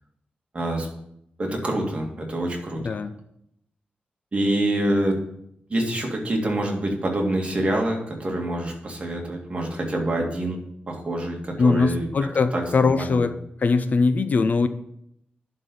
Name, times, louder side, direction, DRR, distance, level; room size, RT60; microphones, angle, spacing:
voice 1, 0.5-0.9 1.4-2.8 4.3-5.2 5.7-10.6 10.9-12.1 12.5-13.3, right 1 dB, 35° right, 0 dB, 2.0 m, -26 dB
voice 2, 2.8-3.1 11.6-13.3 13.6-14.7, left 4 dB, 50° left, 11 dB, 0.5 m, -21 dB
11.0 x 4.0 x 6.8 m, 0.76 s
wide cardioid pair, 140°, 3 cm